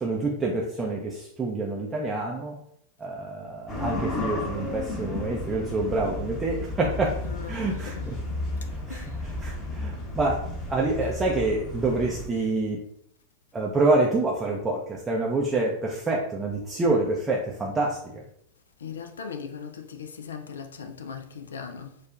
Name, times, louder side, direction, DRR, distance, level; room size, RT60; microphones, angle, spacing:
voice 1, 0.0-2.6 3.0-7.2 7.5-8.2 8.7-9.0 9.4-10.4 10.7-12.8 13.5-18.2, right 2 dB, 15° right, 0.5 m, -27 dB
sound 1, 3.7-12.3, left 2 dB, 20° left, 1.0 m, -33 dB
voice 2, 7.2-8.1 8.9-9.2 11.0-11.1 12.3-12.5 18.8-22.0, left 6 dB, 70° left, 0.4 m, -39 dB
4.4 x 2.3 x 2.4 m
figure-of-eight pair, 90°, 0 cm